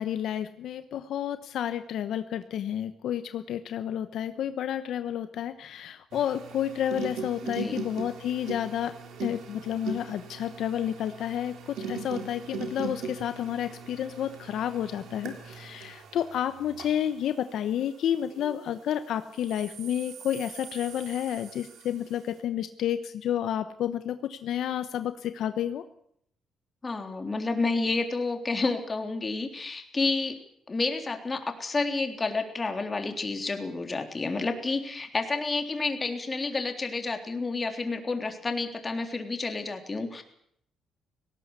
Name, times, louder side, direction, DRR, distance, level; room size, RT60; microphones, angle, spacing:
voice 1, 0.0-8.9 9.2-25.8, left 10 dB, 75° left, 11 dB, 1.0 m, -30 dB
sound 1, 6.1-18.8 19.3-22.2, right 5 dB, 75° right, 3.5 m, -41 dB
voice 2, 7.4-7.9 26.8-30.4 30.7-40.2, left 3 dB, 30° left, 5 dB, 3.5 m, -30 dB
18.5 x 17.5 x 8.3 m, 0.68 s
cardioid pair, 90°, 0 cm